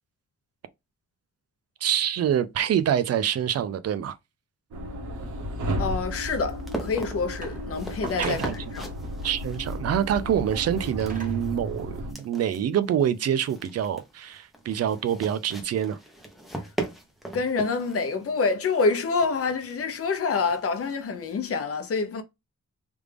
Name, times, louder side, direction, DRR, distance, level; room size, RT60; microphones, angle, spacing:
voice 1, 1.8-4.2 8.2-8.6 9.2-16.0, right 9 dB, 55° right, 0.4 m, -26 dB
sound 1, 4.7-12.1, equal, 85° right, 1.0 m, -33 dB
sound 2, 5.1-21.5, right 1 dB, ahead, 0.7 m, -41 dB
voice 2, 5.8-8.9 17.3-22.2, left 4 dB, 50° left, 0.8 m, -27 dB
sound 3, 7.4-8.8 10.4-11.6 12.4-12.5, right 2 dB, 25° right, 1.2 m, -41 dB
3.4 x 2.4 x 3.3 m
wide cardioid pair, 160°, 30 cm